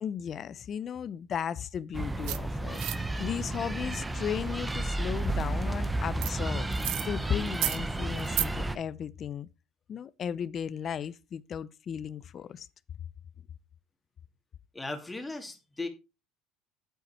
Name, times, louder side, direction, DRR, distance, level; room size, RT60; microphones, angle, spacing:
voice 1, 0.0-6.7 7.0-9.5 9.9-12.7, left 8 dB, 40° left, 0.6 m, -35 dB
sound 1, 1.9-8.8, right 2 dB, 10° right, 0.8 m, -32 dB
sound 2, 2.2-2.4 2.7-3.0 6.2-6.3 6.7-7.1 7.5-7.8 8.2-8.5, right 16 dB, 70° right, 0.7 m, -31 dB
voice 2, 14.7-15.9, left 2 dB, 10° left, 2.5 m, -37 dB
8.2 x 8.2 x 4.4 m
supercardioid pair, 105°, 0 cm